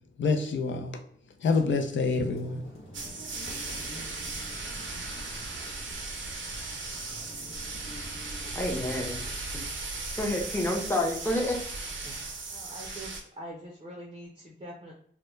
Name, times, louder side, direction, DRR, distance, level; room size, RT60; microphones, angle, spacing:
voice 1, 0.2-1.0 1.4-2.7, left 4 dB, 70° left, 5 dB, 0.4 m, -27 dB
sound 1, 2.1-9.4, equal, 90° left, 0.9 m, -47 dB
sound 2, 2.9-13.2, right 3 dB, 75° right, 0.6 m, -37 dB
voice 2, 8.5-9.2 9.5-9.6 10.2-11.6, left 1 dB, 10° left, 0 dB, 0.7 m, -29 dB
voice 3, 12.5-14.9, right 1 dB, 25° right, -2 dB, 0.5 m, -44 dB
2.2 x 2.1 x 3.0 m, 0.63 s
wide cardioid pair, 75°, 20 cm